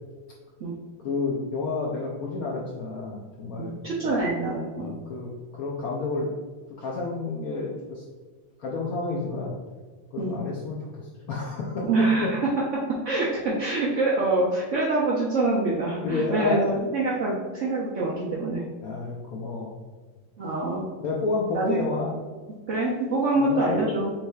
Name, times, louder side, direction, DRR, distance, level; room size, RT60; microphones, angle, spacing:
voice 1, 1.0-3.8 4.0-4.2 4.8-6.3 6.8-8.0 8.6-9.6 10.1-12.3 13.5-13.6 16.0-16.9 18.8-19.7 21.0-22.1 23.4-23.8, left 3 dB, 80° left, -2 dB, 0.8 m, -30 dB
voice 2, 3.6-4.9 10.2-10.4 11.8-12.5 13.0-16.6 16.9-18.6 20.4-20.8 21.5-21.8 22.7-24.1, right 2 dB, 75° right, -5 dB, 0.6 m, -25 dB
7.1 x 3.2 x 2.3 m, 1.4 s
omnidirectional pair, 2.2 m